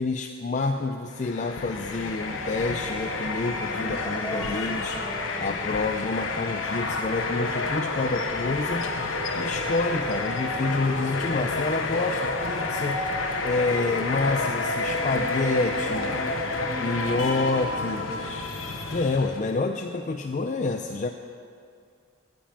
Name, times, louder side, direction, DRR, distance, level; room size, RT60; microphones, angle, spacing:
voice 1, 0.0-5.0 5.4-8.9 9.4-13.0 13.4-16.1 16.8-18.1 18.9-21.1, left 3 dB, 40° left, 5 dB, 0.4 m, -28 dB
sound 1, 1.1-19.6, left 2 dB, 80° left, 1.1 m, -29 dB
voice 2, 3.7-5.7 14.8-18.2, equal, 5° left, -5 dB, 3.0 m, -39 dB
14.0 x 5.3 x 8.8 m, 2.3 s
head